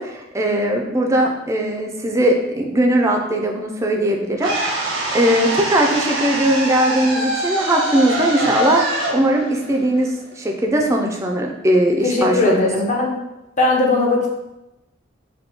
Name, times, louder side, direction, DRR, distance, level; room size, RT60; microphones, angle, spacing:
voice 1, 0.0-8.8 9.1-12.7, right 1 dB, 15° right, 2 dB, 0.3 m, -19 dB
sound 1, 4.4-10.5, right 1 dB, 80° right, 0.6 m, -24 dB
voice 2, 12.0-13.1 13.6-14.3, left 2 dB, 40° left, -1 dB, 0.6 m, -18 dB
2.8 x 2.2 x 3.4 m, 0.94 s
head